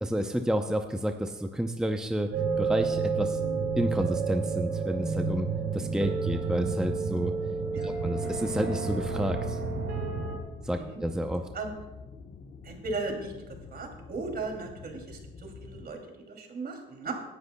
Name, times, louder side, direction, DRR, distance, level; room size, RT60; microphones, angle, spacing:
voice 1, 0.0-2.3 2.6-3.4 3.8-7.3 7.8-9.6 10.6-11.4, equal, 5° right, 5 dB, 0.6 m, -30 dB
sound 1, 2.3-10.4, right 4 dB, 80° right, 2.3 m, -30 dB
sound 2, 7.5-15.9, left 4 dB, 50° left, 1.2 m, -47 dB
voice 2, 12.6-13.3 13.7-17.1, right 3 dB, 50° right, 3 dB, 2.8 m, -36 dB
19.5 x 11.0 x 2.3 m, 1.1 s
cardioid pair, 90°, 20 cm